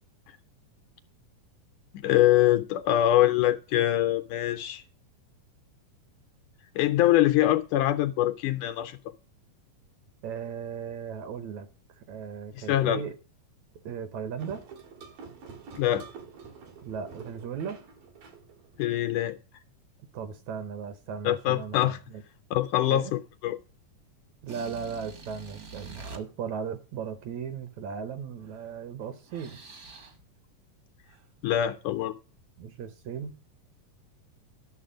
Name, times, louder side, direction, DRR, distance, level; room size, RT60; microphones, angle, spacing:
voice 1, 2.0-4.8 6.8-9.0 12.6-13.0 15.8-16.1 18.8-19.4 21.2-22.0 22.5-23.6 31.4-32.1, left 13 dB, 80° left, 1.9 m, -24 dB
voice 2, 10.2-11.7 12.0-13.1 13.9-14.6 16.8-17.8 20.1-22.2 22.9-23.1 24.4-29.6 32.6-33.3, right 7 dB, 70° right, 1.8 m, -37 dB
sound 1, 14.4-19.3, right 5 dB, 90° right, 3.5 m, -47 dB
sound 2, 24.4-26.2 28.4-28.7 29.0-30.2 31.1-31.3, right 3 dB, 55° right, 1.0 m, -46 dB
11.0 x 6.7 x 5.1 m
omnidirectional pair, 3.9 m